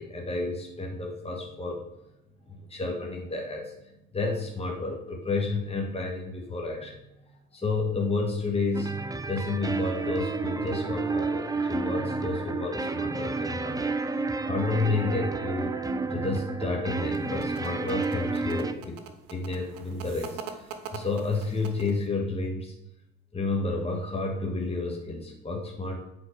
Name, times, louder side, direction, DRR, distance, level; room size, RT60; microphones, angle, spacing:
voice 1, 0.0-1.8 2.5-3.7 4.1-7.0 7.5-9.0 9.3-15.7 16.1-19.0 19.3-20.7 20.9-22.7 23.3-26.0, left 3 dB, 15° left, 0 dB, 1.9 m, -31 dB
sound 1, 8.7-18.7, right 3 dB, 10° right, 0.6 m, -31 dB
sound 2, 16.9-22.1, right 7 dB, 55° right, 1.2 m, -43 dB
8.3 x 4.4 x 6.4 m, 0.87 s
figure-of-eight pair, 60°, 41 cm